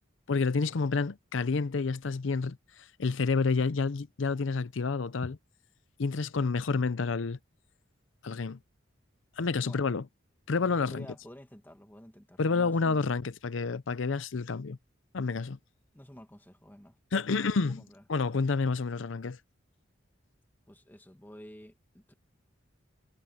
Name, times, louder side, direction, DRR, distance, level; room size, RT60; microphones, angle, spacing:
voice 1, 0.3-5.4 6.0-7.4 8.2-8.6 9.4-10.1 10.5-11.1 12.4-14.8 15.1-15.6 17.1-17.8 18.1-19.4, left 4 dB, 75° left, 0.6 m, -29 dB
voice 2, 10.8-13.0 15.9-17.0 17.3-18.0 20.7-22.1, equal, 10° left, 1.5 m, -51 dB
head